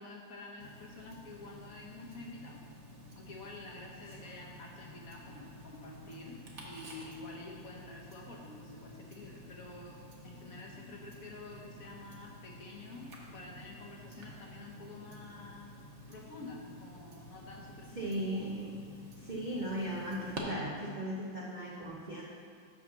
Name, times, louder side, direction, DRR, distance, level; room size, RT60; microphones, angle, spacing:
voice 1, 0.0-2.6 3.1-15.7 16.1-18.2, left 2 dB, 55° left, -1 dB, 1.2 m, -49 dB
Tick-tock, 0.6-20.4, equal, 45° right, 1.2 m, -51 dB
voice 2, 18.0-18.7 19.2-22.2, right 1 dB, 80° right, -4 dB, 0.4 m, -37 dB
6.1 x 5.6 x 6.5 m, 2.3 s
omnidirectional pair, 2.1 m